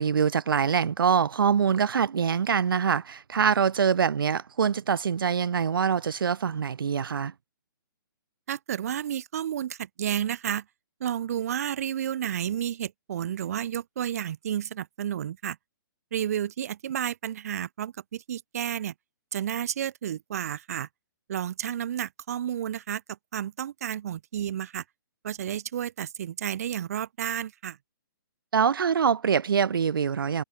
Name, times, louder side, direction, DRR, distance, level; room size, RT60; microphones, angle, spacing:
voice 1, 0.0-7.3 28.5-30.4, right 7 dB, 75° right, 1.3 m, -24 dB
voice 2, 8.5-10.6 11.0-15.6 16.1-18.9 19.3-20.9 21.3-24.8 25.2-27.8, right 10 dB, 45° right, 2.4 m, -31 dB
hypercardioid pair, 170°, 12 cm